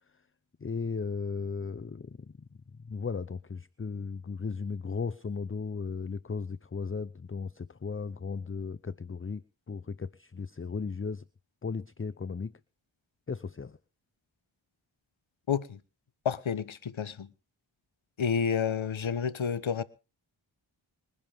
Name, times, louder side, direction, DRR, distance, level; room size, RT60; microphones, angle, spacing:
voice 1, 0.6-2.5 2.8-11.2 11.6-12.6 13.3-13.8, left 5 dB, 25° left, 0.7 m, -36 dB
voice 2, 15.5-15.8 16.2-17.3 18.2-19.8, left 7 dB, 70° left, 1.2 m, -30 dB
26.0 x 11.0 x 3.6 m
cardioid pair, 40°, 48 cm